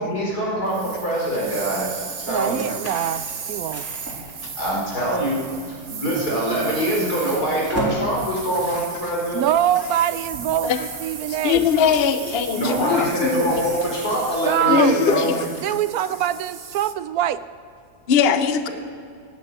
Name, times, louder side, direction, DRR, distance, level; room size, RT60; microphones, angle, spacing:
voice 1, 0.0-2.6 4.6-5.4 5.9-9.4 12.5-15.3, right 1 dB, 75° left, -3 dB, 5.1 m, -24 dB
sound 1, 0.7-16.9, right 6 dB, 40° right, 0.8 m, -36 dB
sound 2, 0.9-15.2, right 1 dB, 10° right, 3.9 m, -38 dB
voice 2, 2.3-3.8 9.3-11.7 14.4-15.1 15.4-17.4, right 11 dB, 75° right, 14 dB, 1.0 m, -24 dB
voice 3, 11.3-13.6 14.7-15.5 18.1-18.7, left 6 dB, 50° left, 10 dB, 0.8 m, -21 dB
16.5 x 9.4 x 8.9 m, 2.4 s
omnidirectional pair, 1.7 m